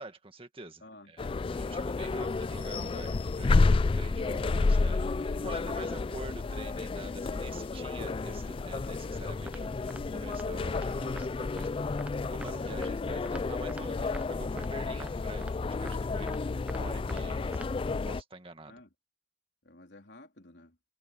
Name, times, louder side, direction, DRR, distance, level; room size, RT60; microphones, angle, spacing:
voice 1, 0.0-11.7 12.3-16.3 16.7-17.6 18.0-18.8, right 2 dB, 30° right, 2.0 m, -47 dB
voice 2, 0.8-1.1 18.7-18.9 19.6-20.8, left 2 dB, 70° left, 3.8 m, -53 dB
sound 1, 1.2-18.2, left 3 dB, 30° left, 0.3 m, -31 dB
sound 2, 9.5-9.6 9.9-10.0 10.3-10.4 10.7-10.9 11.2-11.3 11.6-11.7 12.0-12.1 12.4-12.5 12.8-12.9 13.3-13.4 13.7-13.8 14.1-14.2 14.6-14.7 15.0-15.1 15.4-15.5 15.9-16.0 16.3-16.8 17.1-17.2 17.5-17.7, right 1 dB, 10° right, 0.6 m, -44 dB
head